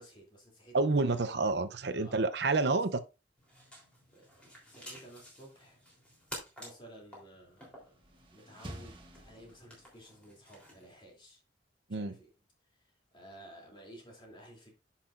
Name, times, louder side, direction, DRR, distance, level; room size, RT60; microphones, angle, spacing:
voice 1, 0.0-0.8 1.1-1.2 2.0-2.3 2.7-2.8 4.1-4.3 4.7-5.8 6.6-11.4 11.9-12.3 13.1-14.7, right 1 dB, 25° left, 2.9 m, -54 dB
voice 2, 0.7-3.0 11.9-12.2, right 3 dB, 65° right, 0.7 m, -29 dB
sound 1, 3.4-10.9, equal, 5° left, 3.4 m, -52 dB
sound 2, 7.7-10.1, right 1 dB, 30° right, 1.5 m, -49 dB
10.0 x 5.9 x 2.5 m
head